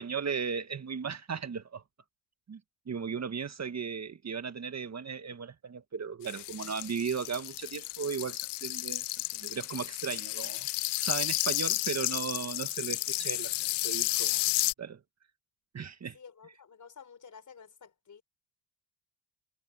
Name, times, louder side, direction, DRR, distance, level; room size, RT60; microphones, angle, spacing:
voice 1, 0.0-1.8 2.5-2.6 2.9-9.1 9.3-10.7 11.0-14.4 14.8-15.0 15.7-16.2, right 6 dB, 35° right, 1.7 m, -36 dB
sound 1, 6.2-14.7, left 19 dB, 60° left, 0.6 m, -32 dB
voice 2, 16.1-18.2, left 6 dB, 40° left, 5.0 m, -52 dB
supercardioid pair, 75°, 47 cm